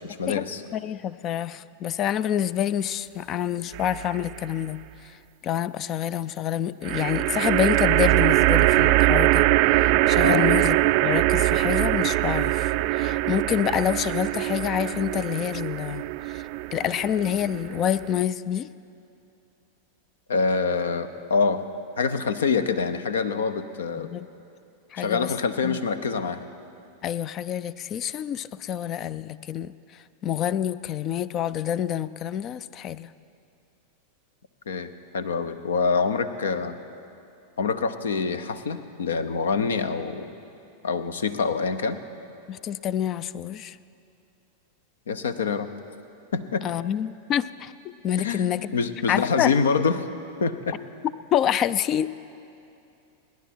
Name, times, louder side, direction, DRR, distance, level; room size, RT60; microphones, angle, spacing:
voice 1, 0.0-0.6 10.2-10.5 20.3-21.6 22.0-24.1 25.0-26.5 34.7-36.8 37.6-40.3 40.8-42.0 45.1-45.7 46.3-46.7 48.2-50.1 50.4-50.8, left 5 dB, 65° left, 12 dB, 0.8 m, -26 dB
voice 2, 0.7-4.8 5.4-10.8 11.0-16.4 16.7-18.7 24.0-24.3 24.9-25.3 25.6-25.8 27.0-29.7 30.2-33.1 42.5-43.8 46.6-48.7 49.1-49.5 51.3-52.1, left 10 dB, 30° left, 17 dB, 0.4 m, -27 dB
sound 1, 3.7-4.4 6.8-18.2, right 17 dB, 45° right, 0.4 m, -22 dB
30.0 x 10.5 x 4.5 m, 2.7 s
figure-of-eight pair, 90°, 0 cm